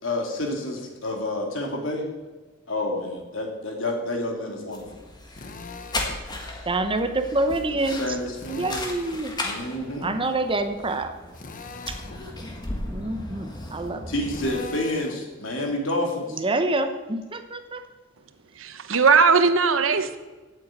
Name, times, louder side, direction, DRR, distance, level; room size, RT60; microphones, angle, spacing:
voice 1, 0.0-2.1 2.7-4.9 7.9-8.8 9.4-10.1 14.1-16.4, left 1 dB, 70° left, 1 dB, 2.7 m, -29 dB
sound 1, 4.7-14.6, left 2 dB, 20° left, 1.7 m, -36 dB
Drill, 5.4-6.2 8.3-9.3 11.3-12.2 14.3-15.2, left 3 dB, 45° left, 0.9 m, -41 dB
voice 2, 6.7-8.2 8.5-9.3 10.0-11.1 11.9-12.0 12.9-14.0 16.3-17.8, right 2 dB, 25° right, 8 dB, 0.8 m, -26 dB
voice 3, 18.5-20.2, right 5 dB, 75° right, 10 dB, 0.9 m, -19 dB
8.4 x 8.3 x 9.0 m, 1.3 s
head